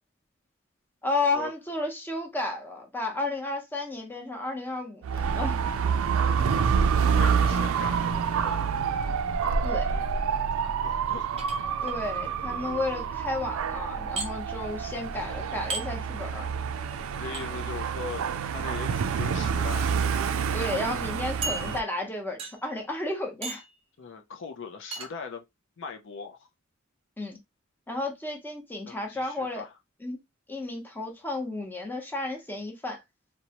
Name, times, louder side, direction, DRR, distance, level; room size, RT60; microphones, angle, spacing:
voice 1, 1.0-5.6 9.6-10.0 11.8-16.5 20.5-23.6 27.2-27.4 27.9-29.6 30.0-30.2 30.5-33.0, left 2 dB, 10° left, 0.7 m, -32 dB
Dog / Motorcycle, 5.0-21.8, right 6 dB, 85° right, 0.3 m, -27 dB
voice 2, 7.0-8.6 10.5-11.3 17.2-20.1 24.0-25.4 25.8-26.5 28.9-29.7, left 5 dB, 65° left, 0.4 m, -40 dB
sound 1, 11.4-12.0 14.2-14.3 15.7-15.9 17.3-17.5 18.8-19.1 19.8-19.9 20.3-20.4 21.4-22.0 22.4-22.7 23.4-23.7 24.9-25.1, right 3 dB, 30° right, 0.6 m, -35 dB
2.9 x 2.1 x 2.8 m
head